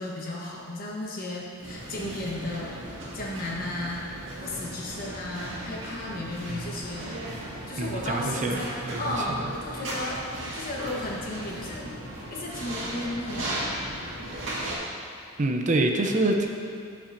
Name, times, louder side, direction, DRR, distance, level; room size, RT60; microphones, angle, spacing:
voice 1, 0.0-2.8 3.1-4.1 4.4-7.1 7.7-10.2 10.5-11.9 12.3-13.6, left 1 dB, 45° left, -4 dB, 1.1 m, -34 dB
sound 1, 1.6-14.8, right 1 dB, 65° right, 2.0 m, -37 dB
voice 2, 7.8-9.0 9.3-9.4 15.4-16.5, right 2 dB, 40° right, 2 dB, 0.6 m, -26 dB
12.5 x 5.9 x 2.6 m, 2.4 s
head